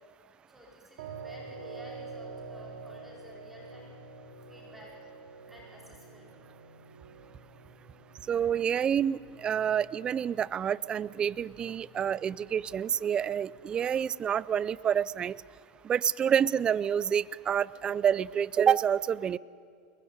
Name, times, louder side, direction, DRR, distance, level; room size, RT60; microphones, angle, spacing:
voice 1, 0.5-3.9 4.4-5.0 5.5-6.4 7.0-7.3, left 1 dB, 5° right, -2 dB, 5.4 m, -52 dB
sound 1, 1.0-14.0, right 4 dB, 80° right, 2.8 m, -48 dB
voice 2, 8.3-15.3 15.8-19.4, right 8 dB, 25° right, 21 dB, 0.5 m, -28 dB
22.5 x 20.5 x 9.6 m, 2.2 s
supercardioid pair, 125°, 3 cm